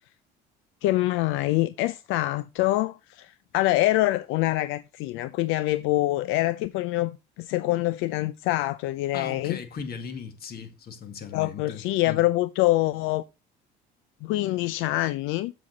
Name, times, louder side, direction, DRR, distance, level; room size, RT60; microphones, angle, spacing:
voice 1, 0.8-9.6 11.3-13.2 14.2-15.5, left 17 dB, 80° left, 0.5 m, -25 dB
voice 2, 9.1-12.2, left 6 dB, 50° left, 1.9 m, -38 dB
7.5 x 7.0 x 4.0 m
cardioid pair, 95°, 20 cm